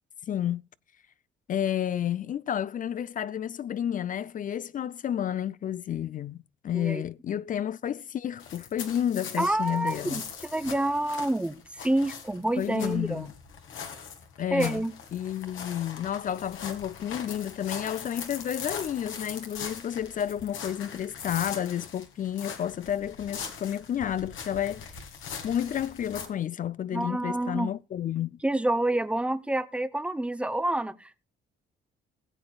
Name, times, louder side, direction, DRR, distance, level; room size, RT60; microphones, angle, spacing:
voice 1, 0.3-0.6 1.5-10.2 12.6-13.3 14.4-14.9 15.1-24.9 25.4-28.4, left 10 dB, 45° left, 0.4 m, -31 dB
sound 1, 8.4-26.2, left 6 dB, 75° left, 1.8 m, -41 dB
voice 2, 9.4-13.3 14.5-14.9 26.9-27.7 28.4-31.2, right 1 dB, 5° right, 0.7 m, -28 dB
19.0 x 7.7 x 2.3 m
cardioid pair, 90°, 20 cm